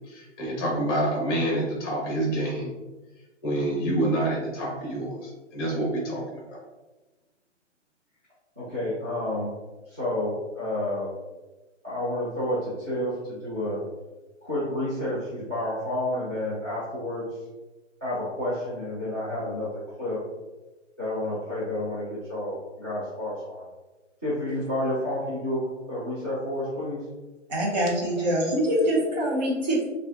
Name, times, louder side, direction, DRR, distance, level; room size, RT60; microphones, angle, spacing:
voice 1, 0.1-2.7 3.4-6.2 6.5-6.6, right 1 dB, 20° left, -3 dB, 1.0 m, -27 dB
voice 2, 8.6-9.5 9.9-11.1 11.8-13.8 14.4-17.2 18.0-19.7 20.0-20.2 21.0-23.7 24.2-27.0 27.9-28.3 28.7-28.9, left 1 dB, 10° right, -12 dB, 0.4 m, -30 dB
voice 3, 27.5-29.8, right 1 dB, 35° right, -3 dB, 0.9 m, -24 dB
5.4 x 2.4 x 2.5 m, 1.1 s
hypercardioid pair, 155°, 37 cm